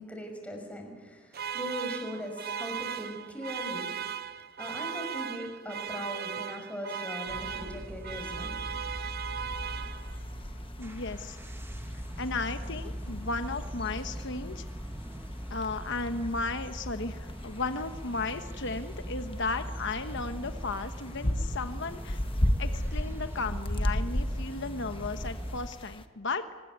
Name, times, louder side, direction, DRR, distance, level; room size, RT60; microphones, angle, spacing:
voice 1, 0.0-3.9 4.6-8.5, equal, 5° left, 3 dB, 6.0 m, -39 dB
sound 1, 1.3-10.4, right 7 dB, 50° right, 1.0 m, -37 dB
sound 2, 7.3-25.6, equal, 10° right, 1.3 m, -40 dB
sound 3, 9.4-26.1, equal, 25° left, 1.3 m, -36 dB
voice 2, 10.8-11.4 12.2-14.6 15.5-22.2 22.6-26.4, left 3 dB, 60° left, 8 dB, 1.2 m, -35 dB
25.5 x 20.5 x 9.5 m, 1.3 s
head